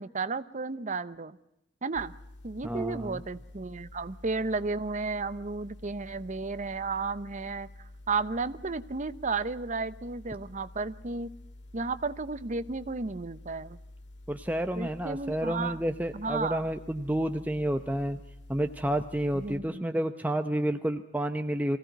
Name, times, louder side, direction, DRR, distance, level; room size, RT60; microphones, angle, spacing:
voice 1, 0.0-1.4 1.8-2.1 2.4-11.3 11.7-13.8 14.8-15.8 16.1-16.6 19.3-19.9, right 4 dB, 45° right, 14 dB, 0.8 m, -33 dB
sound 1, 1.9-19.6, left 1 dB, 80° left, 2.0 m, -49 dB
voice 2, 2.6-3.2 14.3-18.2 18.5-21.8, right 1 dB, 10° right, 7 dB, 0.7 m, -30 dB
23.5 x 16.5 x 9.2 m, 0.85 s
head